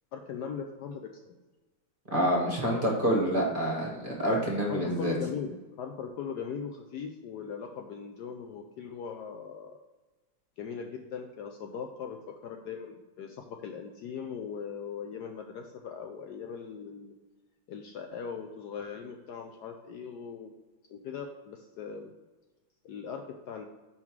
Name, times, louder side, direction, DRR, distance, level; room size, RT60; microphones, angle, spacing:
voice 1, 0.1-1.3 2.7-3.2 4.7-9.8 10.6-17.1 17.7-20.5 20.9-22.1 22.8-23.6, left 6 dB, 75° left, 4 dB, 1.0 m, -39 dB
voice 2, 2.1-5.1, equal, 30° right, -2 dB, 1.1 m, -27 dB
5.5 x 4.8 x 4.5 m, 1.2 s
omnidirectional pair, 2.1 m